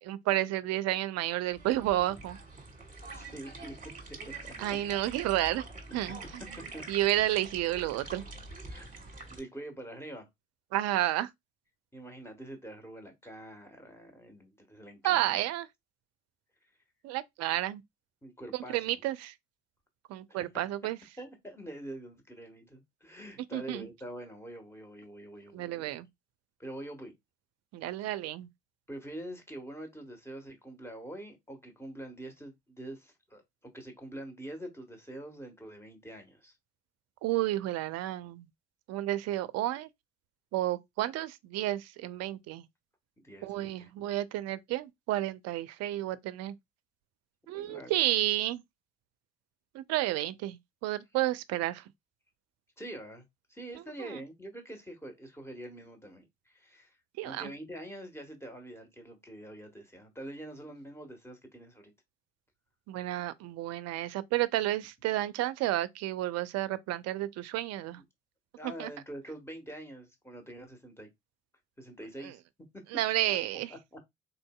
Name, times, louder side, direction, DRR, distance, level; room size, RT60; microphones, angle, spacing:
voice 1, 0.0-2.4 4.6-5.7 5.9-6.4 6.9-8.2 10.7-11.3 15.0-15.7 17.0-17.8 18.5-19.3 20.1-21.0 23.5-23.9 25.5-26.1 27.7-28.5 37.2-38.5 38.9-39.9 40.5-42.7 43.4-46.5 47.5-48.6 49.7-51.8 54.0-54.2 57.2-57.5 62.9-68.0 68.8-68.9 72.2-72.3 72.9-73.7, right 15 dB, 55° right, 0.5 m, -31 dB
sound 1, 1.5-9.4, right 3 dB, 25° right, 1.5 m, -45 dB
voice 2, 3.1-3.7 4.4-4.5 5.9-6.3 6.7-6.8 8.7-9.0 9.3-10.3 11.9-15.4 18.2-19.0 20.3-20.4 21.2-25.9 26.6-27.1 28.9-36.5 43.2-43.9 47.5-48.2 52.8-53.2 53.5-57.0 57.2-61.9 67.9-68.0 68.5-71.1 71.8-72.4 73.3-73.4 73.7-74.0, right 1 dB, 10° left, 1.4 m, -45 dB
4.0 x 2.6 x 2.3 m
hypercardioid pair, 55°, 31 cm